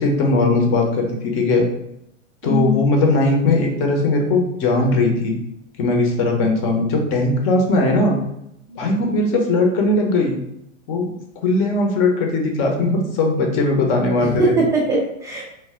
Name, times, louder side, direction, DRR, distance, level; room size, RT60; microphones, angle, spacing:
voice 1, 0.0-1.6 2.4-5.4 5.8-8.2 8.8-10.4 10.9-11.1 11.4-14.6, left 2 dB, 35° left, 1 dB, 0.8 m, -19 dB
voice 2, 2.4-2.8 8.7-8.8 14.2-15.4, equal, 10° right, -4 dB, 0.4 m, -21 dB
3.2 x 2.4 x 3.6 m, 0.79 s
hypercardioid pair, 125°, 39 cm